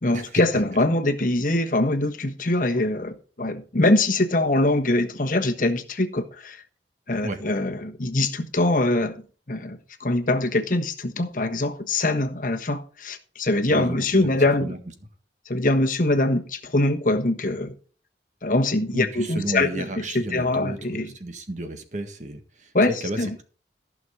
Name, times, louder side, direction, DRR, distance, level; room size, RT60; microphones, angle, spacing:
voice 1, 0.0-6.6 7.1-9.2 9.5-14.7 15.5-17.7 18.4-21.1 22.7-23.3, left 2 dB, 50° left, 1.3 m, -23 dB
voice 2, 13.7-14.3 14.6-14.8 18.9-23.4, right 1 dB, 45° right, 1.6 m, -33 dB
15.0 x 6.2 x 5.4 m
head